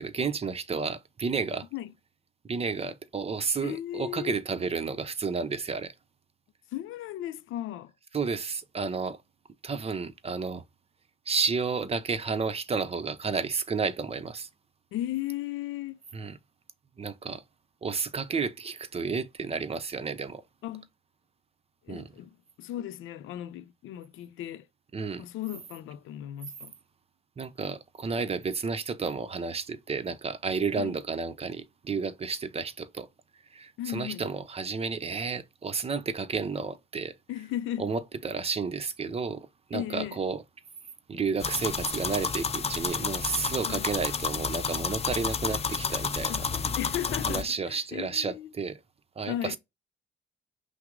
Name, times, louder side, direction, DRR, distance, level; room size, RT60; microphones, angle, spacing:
voice 1, 0.0-1.7 2.4-5.9 8.1-9.2 9.6-10.6 11.3-14.5 16.1-16.4 17.0-17.4 17.8-20.4 21.9-22.1 24.9-25.2 27.4-33.1 33.5-37.1 37.8-40.4 41.1-46.3 47.3-48.8 49.2-49.6, right 5 dB, 30° right, 0.6 m, -31 dB
voice 2, 3.6-4.4 6.7-7.9 14.9-16.0 20.6-20.9 21.8-24.7 25.2-26.8 30.8-31.0 33.8-34.3 37.3-37.9 39.7-40.2 43.7-43.9 46.3-46.4 46.8-48.5 49.3-49.6, left 12 dB, 85° left, 0.5 m, -36 dB
sound 1, 41.4-47.4, left 5 dB, 30° left, 0.6 m, -30 dB
5.8 x 2.0 x 3.7 m
cardioid pair, 90°, 20 cm